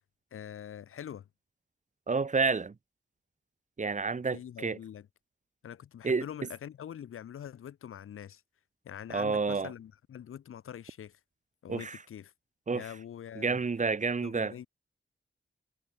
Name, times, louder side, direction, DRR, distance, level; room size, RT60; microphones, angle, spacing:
voice 1, 0.3-1.3 4.3-5.1 5.6-8.4 8.8-11.2 11.6-12.3 12.7-13.6 14.2-14.7, left 9 dB, 90° left, 0.7 m, -44 dB
voice 2, 2.1-2.7 3.8-4.8 6.0-6.2 9.1-9.7 11.7-12.0 12.7-12.8 13.4-14.5, right 4 dB, 35° right, 0.7 m, -29 dB
cardioid pair, 45°, 21 cm